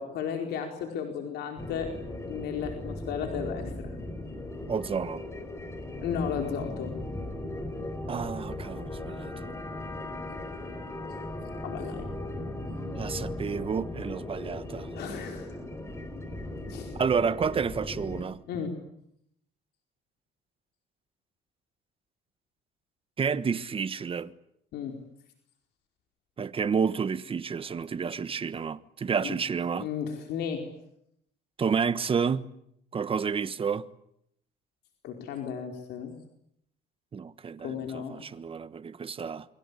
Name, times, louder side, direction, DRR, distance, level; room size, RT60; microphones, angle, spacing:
voice 1, 0.0-1.9 2.3-3.7 6.0-6.9 11.6-12.1 14.9-15.5 16.7-16.9 18.5-18.7 24.7-24.9 29.2-29.3 29.7-30.6 35.0-36.1 37.6-38.2, left 7 dB, 75° left, 4.8 m, -34 dB
sound 1, 1.6-18.2, left 1 dB, 15° left, 4.9 m, -37 dB
voice 2, 4.7-5.2 8.1-9.3 12.9-14.9 16.9-18.4 23.2-24.3 26.4-29.9 31.6-32.5 32.9-33.9 37.1-39.5, right 6 dB, 30° right, 1.4 m, -30 dB
28.0 x 23.5 x 8.5 m
cardioid pair, 110°, 17 cm